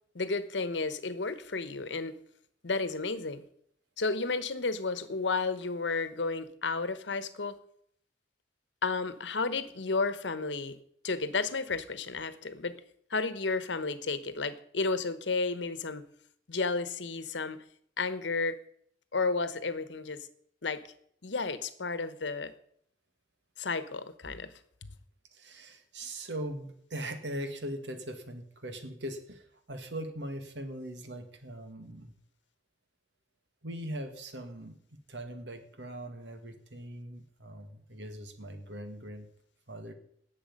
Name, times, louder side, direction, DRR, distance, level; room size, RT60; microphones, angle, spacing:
voice 1, 0.1-2.2 2.6-3.4 4.0-7.5 8.8-10.8 11.0-12.8 13.1-16.1 16.5-17.6 18.0-18.6 19.1-20.3 20.6-20.8 21.2-22.5 23.6-24.5, left 4 dB, 85° left, 13 dB, 1.0 m, -32 dB
voice 2, 25.3-32.1 33.6-39.3 39.7-39.9, right 1 dB, 70° right, 7 dB, 1.9 m, -41 dB
18.0 x 7.3 x 5.3 m, 0.67 s
head